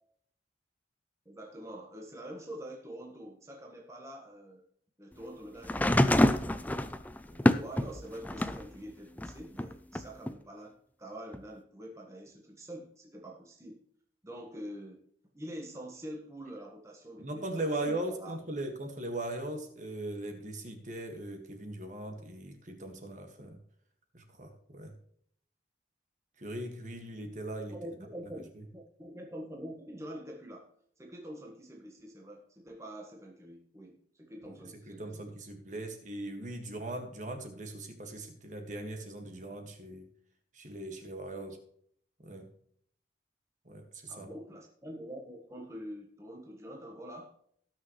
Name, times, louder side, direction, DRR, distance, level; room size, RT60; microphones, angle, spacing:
voice 1, 1.2-4.6 5.0-6.8 7.2-13.8 14.2-15.0 15.3-18.4 27.7-28.4 28.7-30.7 31.0-35.3 44.1-47.3, equal, 15° right, 0 dB, 1.5 m, -45 dB
sound 1, 5.6-8.7 9.2-10.3 11.3-11.4, left 1 dB, 10° left, 0.4 m, -27 dB
voice 2, 17.2-23.6 24.1-24.9 26.4-27.8 34.9-40.1 40.5-41.6 42.2-42.5 43.7-44.3, right 1 dB, 40° right, 4 dB, 1.9 m, -39 dB
18.5 x 6.5 x 3.2 m, 0.64 s
head